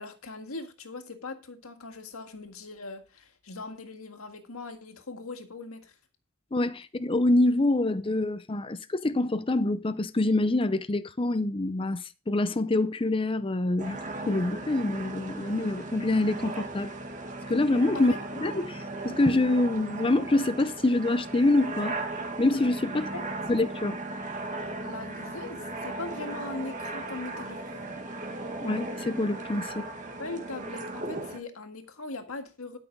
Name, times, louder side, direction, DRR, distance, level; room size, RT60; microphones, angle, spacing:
voice 1, 0.0-6.0 17.9-18.2 23.1-23.3 24.8-28.0 30.2-32.8, left 3 dB, 85° left, 1.8 m, -40 dB
voice 2, 6.5-14.0 14.3-16.9 17.5-21.9 22.4-23.1 23.5-24.0 28.6-29.9, left 2 dB, 25° left, 0.6 m, -26 dB
sound 1, 13.8-31.4, right 2 dB, 35° right, 2.1 m, -37 dB
12.5 x 6.1 x 5.2 m
head